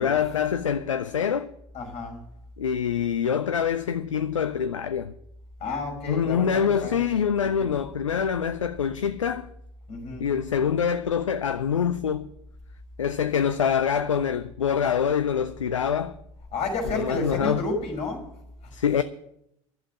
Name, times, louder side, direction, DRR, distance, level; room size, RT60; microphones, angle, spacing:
voice 1, 0.0-1.5 2.6-5.1 6.1-9.5 10.2-12.3 13.0-16.2 16.9-17.6 18.7-19.0, left 7 dB, 80° left, 0.5 m, -25 dB
voice 2, 1.7-2.2 5.6-7.1 7.4-7.7 9.9-10.3 16.5-18.3, left 3 dB, 40° left, 5.3 m, -31 dB
12.0 x 7.4 x 8.8 m
figure-of-eight pair, 70°, 16 cm